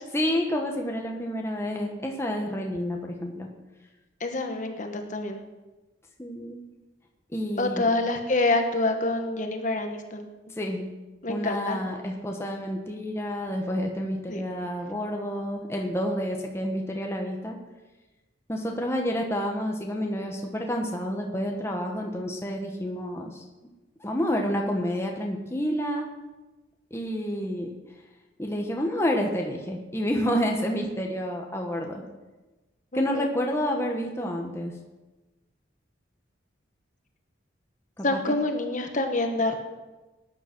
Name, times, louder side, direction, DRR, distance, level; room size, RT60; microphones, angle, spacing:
voice 1, 0.1-3.5 6.2-6.6 7.3-7.9 10.6-10.9 11.3-17.6 18.5-23.4 24.0-26.1 26.9-27.7 28.4-32.0 32.9-34.7 38.0-38.3, equal, 15° left, 1 dB, 1.5 m, -29 dB
voice 2, 4.2-5.4 7.6-10.3 11.2-11.8 14.3-14.4 32.9-33.3 38.0-39.6, left 2 dB, 40° left, 5 dB, 1.6 m, -27 dB
17.5 x 10.5 x 6.2 m, 1.1 s
head